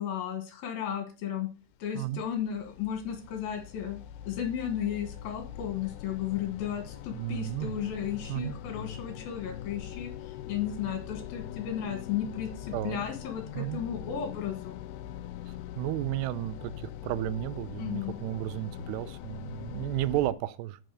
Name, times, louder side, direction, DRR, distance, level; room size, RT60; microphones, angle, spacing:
voice 1, 0.0-1.5 1.8-14.8 17.8-18.2, left 9 dB, 70° left, 3.3 m, -34 dB
sound 1, 1.9-20.3, left 11 dB, 85° left, 2.7 m, -42 dB
voice 2, 7.1-7.8 8.3-8.6 12.7-13.0 13.6-13.8 15.5-20.8, right 15 dB, 85° right, 2.8 m, -33 dB
9.1 x 6.7 x 6.3 m
omnidirectional pair, 4.7 m